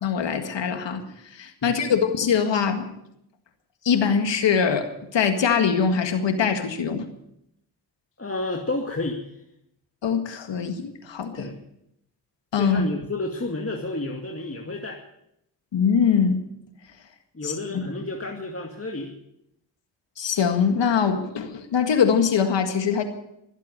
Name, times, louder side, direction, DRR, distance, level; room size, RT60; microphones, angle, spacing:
voice 1, 0.0-2.9 3.8-7.1 10.0-11.5 12.5-12.8 15.7-16.4 17.4-17.8 20.2-23.0, left 6 dB, 80° left, 7 dB, 1.9 m, -23 dB
voice 2, 8.2-9.2 11.4-11.6 12.6-15.0 17.3-19.1, left 2 dB, 30° left, 1 dB, 2.3 m, -30 dB
24.5 x 8.4 x 6.7 m, 0.78 s
supercardioid pair, 45°, 43 cm